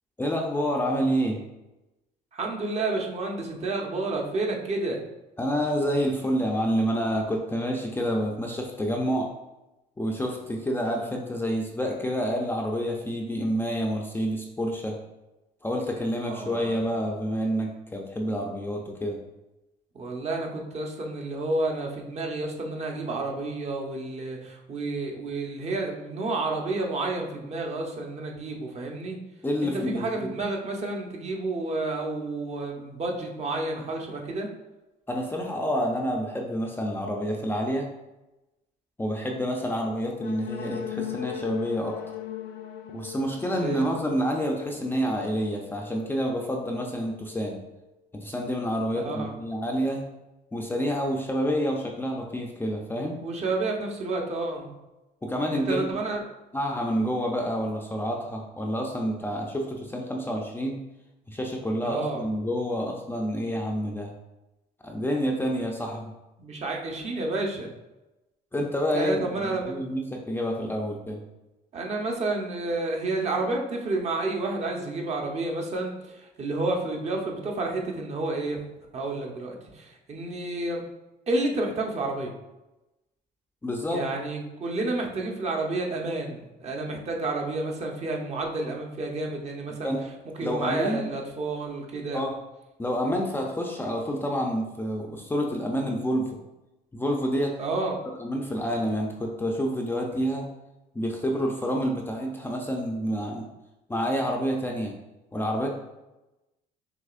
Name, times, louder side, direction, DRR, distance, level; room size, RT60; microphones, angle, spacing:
voice 1, 0.2-1.4 5.4-9.3 10.0-15.0 15.6-19.2 29.4-30.3 35.1-37.9 39.0-42.0 42.9-47.6 48.1-50.0 50.5-53.2 55.2-55.9 56.5-60.8 61.3-64.1 64.8-66.1 68.5-71.2 83.6-84.0 89.8-90.0 90.4-91.1 92.1-92.4 92.8-96.4 96.9-97.5 98.2-100.5 100.9-103.5 103.9-105.0 105.3-105.7, equal, 10° left, 0 dB, 0.5 m, -28 dB
voice 2, 2.3-5.0 16.2-16.8 19.9-29.2 29.6-34.5 43.5-43.9 48.9-49.4 53.2-54.7 55.5-56.2 61.8-62.3 66.4-67.7 68.9-69.7 71.7-78.7 78.9-80.8 81.3-82.3 83.9-89.9 90.4-92.2 97.6-98.0, right 2 dB, 40° right, 1 dB, 0.9 m, -30 dB
sound 1, 40.2-47.9, left 10 dB, 80° left, 0.4 m, -40 dB
6.1 x 2.9 x 2.5 m, 1.0 s
cardioid pair, 110°, 17 cm